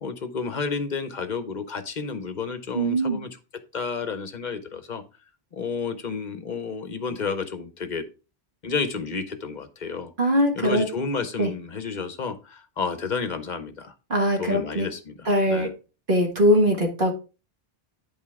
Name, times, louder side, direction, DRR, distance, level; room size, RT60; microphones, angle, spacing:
voice 1, 0.0-3.4 3.7-5.0 5.5-8.1 8.6-10.1 10.5-13.9 14.4-15.7, left 5 dB, 50° left, 11 dB, 0.9 m, -31 dB
voice 2, 2.7-3.2 10.2-10.9 11.4-11.5 14.1-14.9 15.3-15.7 16.1-17.1, equal, 55° right, 2 dB, 1.9 m, -21 dB
9.0 x 5.4 x 3.5 m, 0.31 s
omnidirectional pair, 1.0 m